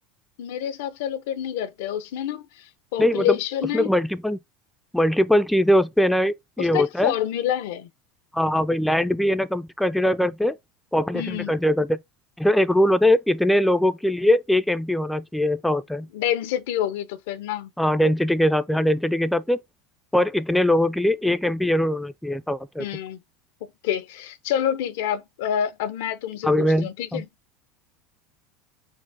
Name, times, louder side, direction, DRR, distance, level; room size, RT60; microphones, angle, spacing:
voice 1, 0.4-3.9 6.6-7.9 11.1-11.5 16.1-17.7 18.0-18.1 22.8-23.2 23.8-27.3, left 10 dB, 80° left, 0.5 m, -27 dB
voice 2, 3.0-3.4 3.7-4.4 4.9-7.1 8.3-10.6 10.9-12.0 12.4-16.1 17.8-19.6 20.1-22.9 26.4-27.2, left 1 dB, 5° left, 0.3 m, -21 dB
4.4 x 2.0 x 4.6 m
supercardioid pair, 120°, 0 cm